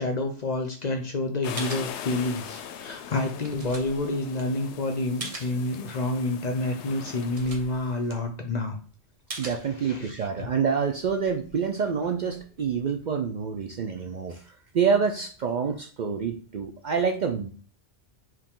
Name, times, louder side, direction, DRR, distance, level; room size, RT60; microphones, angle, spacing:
voice 1, 0.0-8.8 9.8-10.5, left 2 dB, 50° left, 5 dB, 0.6 m, -29 dB
sound 1, 1.4-8.0, left 9 dB, 75° left, 0.8 m, -41 dB
sound 2, 1.6-2.6 2.9-5.6 6.1-6.2 6.6-6.7 7.0-8.7 9.3-10.3 10.7-13.0, right 3 dB, 35° right, 0.9 m, -42 dB
voice 2, 9.4-17.5, right 6 dB, 60° right, 4 dB, 0.5 m, -27 dB
4.6 x 2.9 x 3.7 m, 0.43 s
omnidirectional pair, 1.2 m